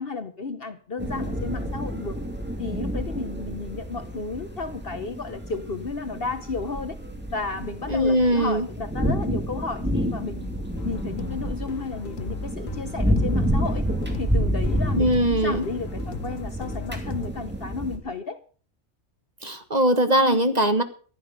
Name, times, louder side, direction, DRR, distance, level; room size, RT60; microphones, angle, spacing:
voice 1, 0.0-2.2 2.6-7.0 7.3-10.5 10.8-13.8 14.2-18.4 20.2-20.4, left 4 dB, 45° left, 11 dB, 1.1 m, -33 dB
sound 1, 1.0-18.0, equal, 5° right, 2.8 m, -29 dB
voice 2, 7.9-8.7 15.0-15.6 19.4-20.8, equal, 30° right, 9 dB, 1.5 m, -21 dB
sound 2, 10.8-17.3, left 6 dB, 65° left, 1.3 m, -38 dB
15.0 x 11.0 x 6.4 m, 0.41 s
omnidirectional pair, 1.5 m